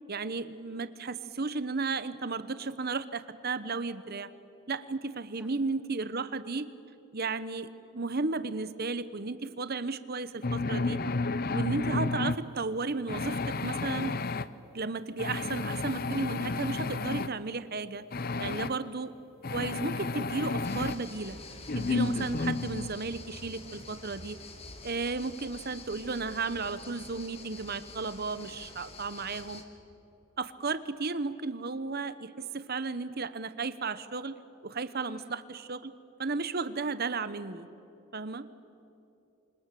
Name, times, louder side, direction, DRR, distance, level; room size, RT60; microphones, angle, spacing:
voice 1, 0.1-4.3 4.7-6.7 7.1-11.0 11.5-14.1 14.7-18.1 18.4-19.1 19.5-21.4 21.7-24.4 24.8-29.6 30.4-34.3 34.6-35.9 36.2-37.7 38.1-38.5, right 4 dB, 45° right, 13 dB, 0.9 m, -34 dB
voice 2, 0.7-1.0 5.4-5.5 35.0-35.4, equal, 5° right, 2 dB, 2.6 m, -53 dB
sound 1, 10.4-12.4 13.1-14.5 15.2-17.3 18.1-18.7 19.4-21.0 21.7-22.9, left 3 dB, 40° left, 0.6 m, -31 dB
sound 2, 20.6-29.6, left 3 dB, 25° left, 1.9 m, -47 dB
28.5 x 26.0 x 7.6 m, 2.9 s
head